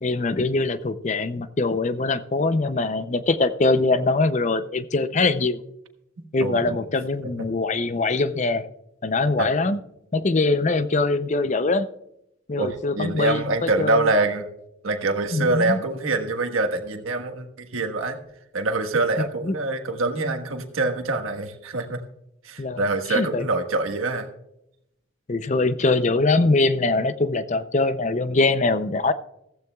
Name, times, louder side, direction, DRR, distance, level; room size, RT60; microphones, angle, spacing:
voice 1, 0.0-5.6 6.3-8.7 9.0-9.8 10.1-11.9 12.5-14.1 15.3-15.8 19.2-19.5 22.6-22.8 23.1-23.5 25.3-29.1, left 3 dB, 35° left, 13 dB, 0.5 m, -23 dB
voice 2, 6.2-6.8 9.4-9.5 12.6-14.5 14.8-18.2 18.5-22.0 22.4-24.3, right 2 dB, 85° right, 5 dB, 1.4 m, -25 dB
15.0 x 15.0 x 2.3 m, 0.83 s
head